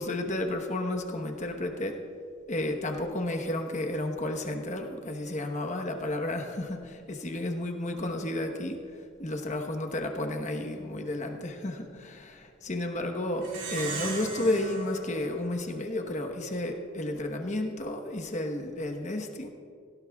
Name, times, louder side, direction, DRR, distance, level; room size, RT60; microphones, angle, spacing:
voice 1, 0.0-2.0 2.5-8.8 9.2-19.5, left 1 dB, 35° left, 4 dB, 1.1 m, -32 dB
Plucked string instrument, 13.4-16.2, right 3 dB, 70° right, 2.6 m, -38 dB
18.0 x 16.5 x 2.4 m, 2.4 s
head